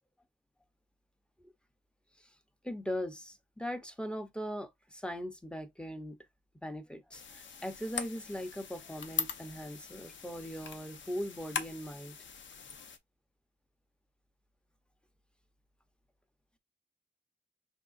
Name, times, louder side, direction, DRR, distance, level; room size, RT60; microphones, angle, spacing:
voice 1, 2.6-6.2 6.6-12.2, equal, 5° left, 0.6 m, -40 dB
sound 1, 7.1-13.0, left 6 dB, 85° left, 0.7 m, -41 dB
5.6 x 3.6 x 2.4 m
wide cardioid pair, 150°, 19 cm